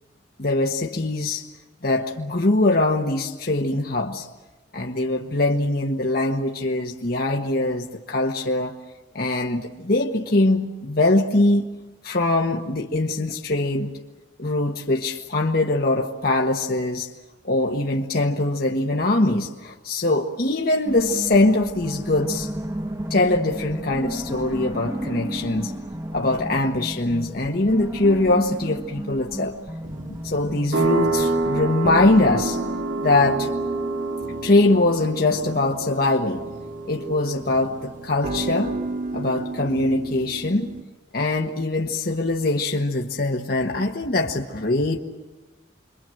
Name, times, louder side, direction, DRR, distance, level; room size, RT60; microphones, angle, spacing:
voice 1, 0.4-1.4 1.8-4.3 4.7-8.8 9.1-11.6 12.0-13.9 14.4-17.1 17.4-22.5 23.1-25.7 26.1-29.6 30.2-32.6 33.0-33.5 34.4-36.4 36.9-38.7 39.1-40.7 41.1-45.0, left 2 dB, 50° left, 0 dB, 1.3 m, -22 dB
sound 1, 20.8-31.7, right 1 dB, 15° right, 1.0 m, -33 dB
sound 2, 29.8-40.8, right 1 dB, 45° right, 0.8 m, -34 dB
sound 3, 30.7-39.1, right 3 dB, 85° right, 3.9 m, -28 dB
27.5 x 23.5 x 7.8 m, 1.1 s
head